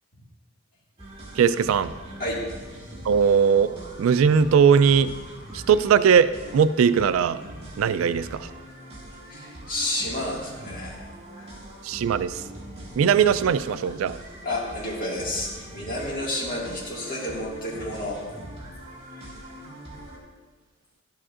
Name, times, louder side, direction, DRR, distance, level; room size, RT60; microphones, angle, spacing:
sound 1, 1.0-20.2, right 1 dB, 30° right, 1.8 m, -42 dB
voice 1, 1.4-1.9 3.0-3.7 4.0-5.1 5.5-7.4 7.8-8.5 11.8-12.4 13.0-14.2, right 7 dB, 85° right, 15 dB, 0.3 m, -19 dB
voice 2, 9.3-11.0 11.3-11.5 14.4-18.2 19.1-19.3, left 1 dB, 45° left, -4 dB, 1.9 m, -31 dB
11.0 x 7.6 x 2.5 m, 1.3 s
head